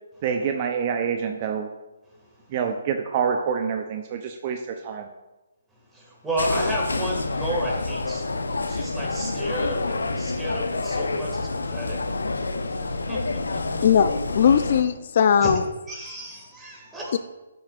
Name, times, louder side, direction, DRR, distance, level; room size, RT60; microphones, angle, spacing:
voice 1, 0.2-1.7 2.5-5.1, right 6 dB, 35° right, 5 dB, 0.5 m, -26 dB
voice 2, 5.9-8.3 8.7-12.0 12.9-13.9 15.4-15.5 15.9-17.2, right 1 dB, 10° right, -3 dB, 2.0 m, -32 dB
sound 1, 6.4-14.8, left 3 dB, 80° left, 0.7 m, -28 dB
voice 3, 13.8-15.7 17.1-17.2, left 7 dB, 50° left, 11 dB, 0.4 m, -19 dB
11.5 x 5.9 x 2.4 m, 1.1 s
figure-of-eight pair, 140°, 0 cm